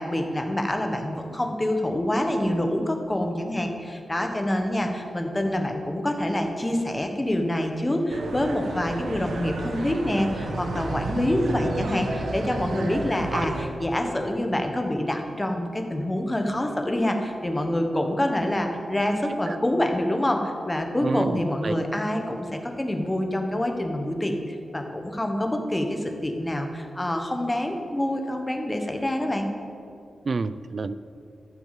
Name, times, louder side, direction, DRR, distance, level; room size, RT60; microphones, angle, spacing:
voice 1, 0.0-29.5, left 1 dB, 15° left, 4 dB, 1.1 m, -26 dB
sound 1, 8.1-13.7, right 2 dB, 70° right, 1.4 m, -31 dB
voice 2, 21.0-21.8 30.3-30.9, right 4 dB, 45° right, 15 dB, 0.4 m, -29 dB
13.5 x 6.4 x 7.4 m, 2.5 s
wide cardioid pair, 145°, 0 cm